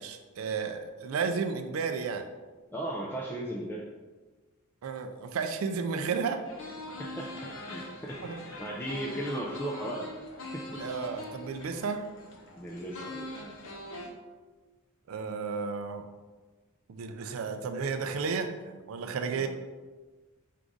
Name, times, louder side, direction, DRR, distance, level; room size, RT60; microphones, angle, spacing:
voice 1, 0.0-2.3 4.8-6.4 8.2-8.4 10.8-12.1 15.1-16.1 16.9-19.5, right 5 dB, 75° right, 7 dB, 0.4 m, -33 dB
voice 2, 2.7-3.9 7.0-10.1 10.5-10.8 12.6-13.5, right 1 dB, 10° left, -3 dB, 0.3 m, -37 dB
sound 1, 6.4-14.1, left 1 dB, 65° left, 0.7 m, -42 dB
4.6 x 2.4 x 3.8 m, 1.3 s
head